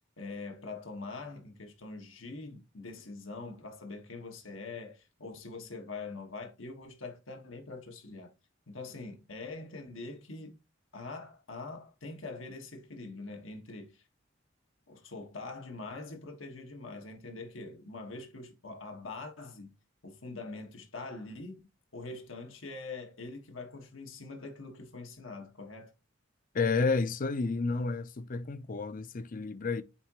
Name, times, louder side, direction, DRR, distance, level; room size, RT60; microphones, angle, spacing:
voice 1, 0.2-8.3 8.7-10.6 10.9-14.1 14.9-25.9, left 3 dB, 90° left, 1.6 m, -44 dB
voice 2, 26.5-29.8, left 4 dB, 45° left, 0.5 m, -31 dB
8.9 x 3.7 x 3.0 m
head